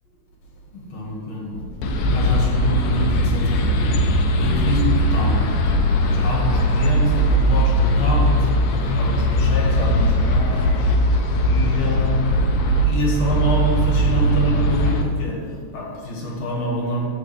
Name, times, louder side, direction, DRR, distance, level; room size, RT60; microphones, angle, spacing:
voice 1, 0.7-5.5 6.0-10.9 11.4-12.4 12.9-17.1, equal, 55° left, -2 dB, 2.5 m, -26 dB
sound 1, 1.8-15.0, equal, 85° left, 2.4 m, -19 dB
15.0 x 5.1 x 3.3 m, 2.2 s
omnidirectional pair, 4.0 m